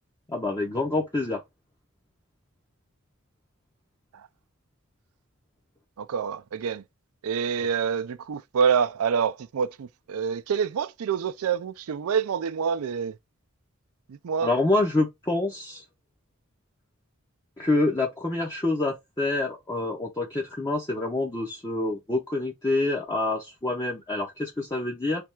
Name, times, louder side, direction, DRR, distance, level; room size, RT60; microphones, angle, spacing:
voice 1, 0.3-1.4 14.4-15.8 17.6-25.3, left 2 dB, 15° left, 0.6 m, -27 dB
voice 2, 6.0-6.8 7.2-13.2 14.1-14.5, right 6 dB, 75° right, 0.4 m, -27 dB
3.3 x 2.3 x 4.4 m
head